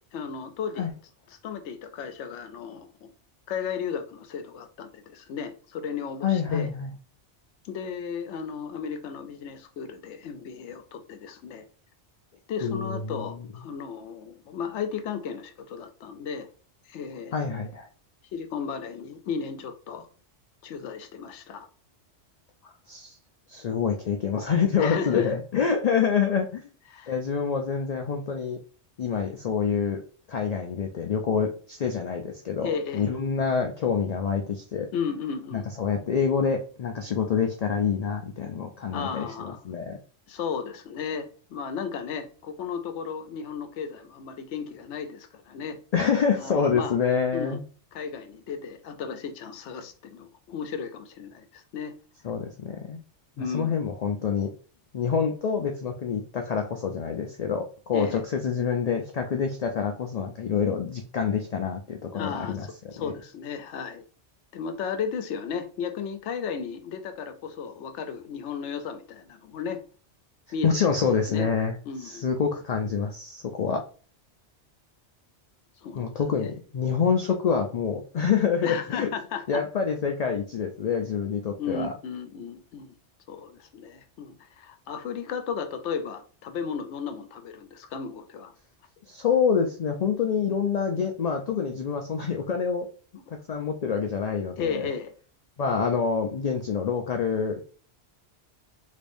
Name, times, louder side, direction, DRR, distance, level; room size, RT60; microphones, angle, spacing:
voice 1, 0.1-0.9 1.4-3.1 3.5-6.7 7.6-11.6 12.5-16.5 16.9-17.4 18.3-20.1 20.6-21.7 24.8-25.3 26.9-27.2 32.6-33.1 34.9-35.7 38.9-39.6 40.3-45.8 46.4-47.0 47.3-47.6 47.9-51.9 53.4-53.7 57.9-58.2 62.1-62.6 62.9-64.0 64.5-69.8 70.5-70.7 71.3-71.5 71.8-72.2 75.8-76.5 78.6-79.6 81.6-83.0 83.3-88.5 94.6-95.1, left 6 dB, 80° left, 0.9 m, -34 dB
voice 2, 6.2-6.9 12.6-13.4 17.3-17.9 22.9-23.1 23.5-26.6 27.1-28.6 29.0-30.0 30.3-34.9 35.5-40.0 45.9-47.6 52.2-53.0 53.5-54.5 54.9-63.1 70.6-71.7 72.0-73.8 76.0-79.1 79.5-81.9 89.1-92.9 93.5-94.9 95.6-97.6, left 6 dB, 65° left, 0.4 m, -27 dB
3.4 x 3.2 x 2.5 m
omnidirectional pair, 1.2 m